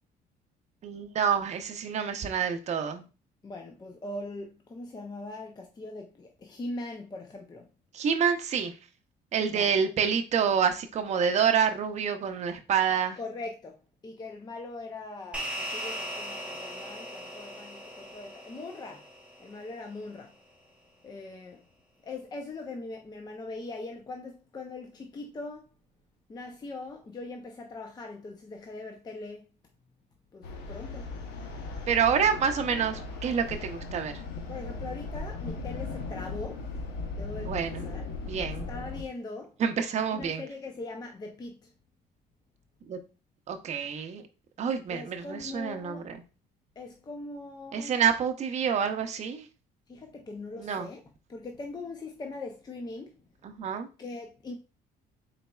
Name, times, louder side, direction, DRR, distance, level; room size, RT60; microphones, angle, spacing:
voice 1, 0.8-3.0 7.9-8.7 9.3-13.2 31.9-34.1 37.5-37.8 38.3-38.7 39.6-40.4 42.9-43.0 43.5-44.2 44.6-46.2 47.7-49.5 50.6-50.9 53.4-53.9, right 7 dB, 40° right, 0.6 m, -27 dB
voice 2, 3.4-7.7 9.5-9.8 13.2-13.8 14.0-19.1 19.4-20.3 21.0-21.7 22.0-25.7 26.3-29.5 30.3-31.1 34.5-36.6 37.1-38.0 38.4-39.5 40.1-41.7 44.9-46.1 46.8-47.9 49.9-51.0 51.3-53.1 54.0-54.5, left 2 dB, 25° left, 0.5 m, -41 dB
sound 1, 15.3-20.0, equal, 5° right, 1.0 m, -39 dB
sound 2, 30.4-39.0, left 3 dB, 85° left, 0.8 m, -37 dB
4.1 x 4.0 x 2.3 m
cardioid pair, 110°, 17 cm